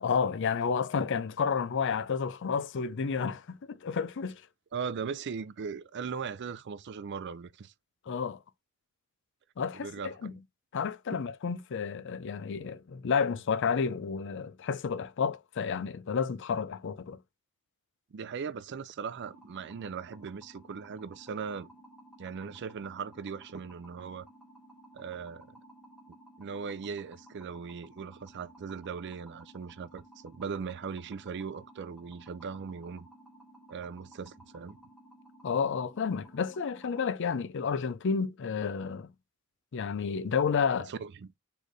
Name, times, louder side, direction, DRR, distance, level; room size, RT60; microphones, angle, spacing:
voice 1, 0.0-4.4 8.1-8.4 9.6-10.3 10.7-17.2 35.4-39.1 39.7-40.9, left 6 dB, 60° left, 0.5 m, -31 dB
voice 2, 4.7-7.7 9.8-10.4 18.1-21.7 22.2-24.3 24.9-25.5 26.4-33.1 33.7-34.8 40.9-41.3, right 6 dB, 55° right, 0.4 m, -39 dB
sound 1, 19.2-37.0, equal, 5° right, 1.8 m, -55 dB
4.3 x 3.4 x 3.0 m
head